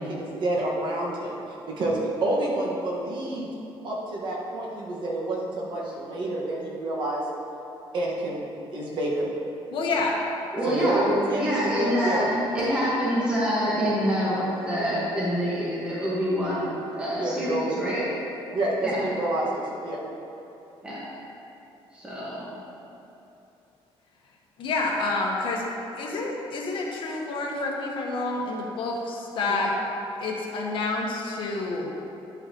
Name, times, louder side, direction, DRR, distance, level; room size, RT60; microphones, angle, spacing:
voice 1, 0.0-1.4 1.8-3.5 3.8-7.2 7.9-9.3 10.6-12.2 17.2-17.8 18.5-20.0 29.5-29.6, right 1 dB, 55° right, -4 dB, 1.5 m, -28 dB
voice 2, 9.7-10.2 24.6-25.7 25.9-29.7 30.2-31.9, left 3 dB, 60° left, -2 dB, 1.2 m, -28 dB
voice 3, 10.5-18.0 18.8-19.0 20.8-21.0 21.9-22.5, equal, 10° right, -9 dB, 1.4 m, -26 dB
10.5 x 5.7 x 3.0 m, 2.9 s
cardioid pair, 150°, 10 cm